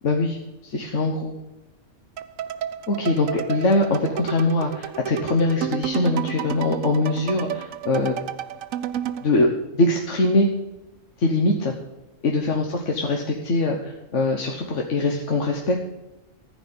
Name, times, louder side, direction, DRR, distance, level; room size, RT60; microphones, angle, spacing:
voice 1, 0.0-1.4 2.9-8.2 9.2-9.5 9.7-10.5 11.2-11.7 12.2-15.8, left 2 dB, 65° left, 1 dB, 1.5 m, -22 dB
sound 1, 2.2-9.3, right 10 dB, 85° right, 1.1 m, -31 dB
14.5 x 5.0 x 8.6 m, 0.99 s
omnidirectional pair, 1.3 m